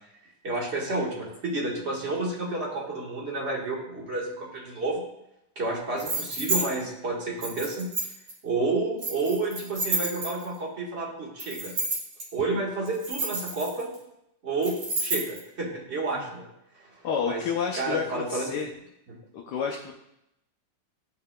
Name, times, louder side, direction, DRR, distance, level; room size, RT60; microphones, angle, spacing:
voice 1, 0.4-5.0 5.5-7.9 8.4-11.7 12.3-13.9 14.4-14.7 15.0-16.5 16.8-16.9 17.3-17.4 17.7-18.6 19.1-19.2, right 2 dB, 35° right, -3 dB, 1.5 m, -30 dB
sound 1, 6.0-6.6 7.4-8.3 9.0-10.6 11.4-12.2 12.9-13.9 14.6-15.4, right 2 dB, 85° right, 3.2 m, -30 dB
voice 2, 17.0-18.7 19.3-19.9, left 6 dB, 70° left, 1 dB, 1.1 m, -30 dB
13.0 x 5.5 x 2.2 m, 0.82 s
omnidirectional pair, 2.2 m